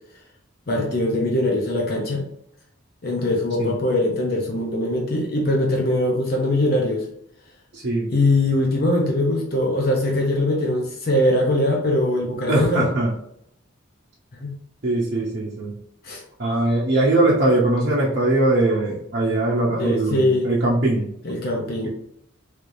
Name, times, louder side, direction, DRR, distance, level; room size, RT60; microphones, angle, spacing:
voice 1, 0.7-2.2 3.0-7.0 8.1-12.9 14.3-14.6 16.0-16.2 19.7-20.5 21.2-21.9, left 1 dB, 50° left, 0 dB, 0.6 m, -22 dB
voice 2, 7.7-8.1 12.5-13.1 14.8-15.8 16.4-21.1 21.8-21.9, right 2 dB, 55° right, -6 dB, 0.7 m, -21 dB
3.2 x 3.2 x 2.6 m, 0.74 s
head